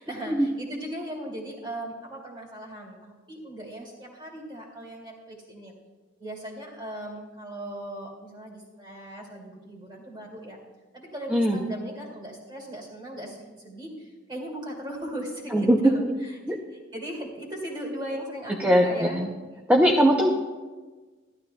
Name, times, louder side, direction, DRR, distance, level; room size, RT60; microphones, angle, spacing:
voice 1, 0.0-5.7 6.2-10.6 10.9-16.4 16.7-19.3 20.0-20.3, right 1 dB, 25° right, -1 dB, 2.4 m, -38 dB
voice 2, 15.5-15.9 16.5-16.6 18.6-19.3 19.7-20.3, equal, 10° right, 0 dB, 0.6 m, -20 dB
14.5 x 12.0 x 2.2 m, 1.3 s
head